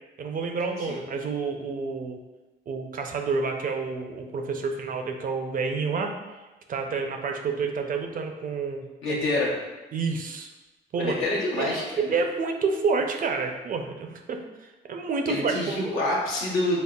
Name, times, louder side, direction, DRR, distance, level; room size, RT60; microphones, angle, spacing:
voice 1, 0.2-2.2 2.7-6.1 6.7-9.2 9.9-10.5 10.9-11.2 11.5-14.4 14.9-15.9, right 4 dB, 45° right, 4 dB, 0.4 m, -29 dB
voice 2, 9.0-9.5 11.0-12.0 15.3-16.8, left 2 dB, 85° left, -5 dB, 1.0 m, -27 dB
5.2 x 2.0 x 2.3 m, 1.1 s
cardioid pair, 90°, 20 cm